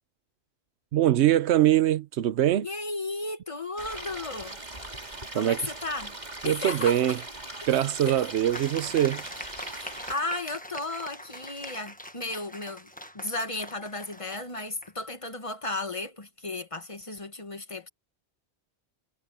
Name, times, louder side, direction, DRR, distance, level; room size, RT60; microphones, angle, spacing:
voice 1, 0.9-2.7 5.3-5.7 6.4-7.2 7.7-9.2, right 12 dB, 85° right, 0.9 m, -23 dB
voice 2, 2.6-4.6 5.3-6.1 6.4-7.2 7.7-8.2 9.7-17.9, left 2 dB, 30° left, 1.5 m, -34 dB
Stream, 3.8-10.1, right 2 dB, 40° right, 3.3 m, -40 dB
sound 1, 8.5-14.9, left 1 dB, 10° left, 1.3 m, -43 dB
omnidirectional pair, 1.1 m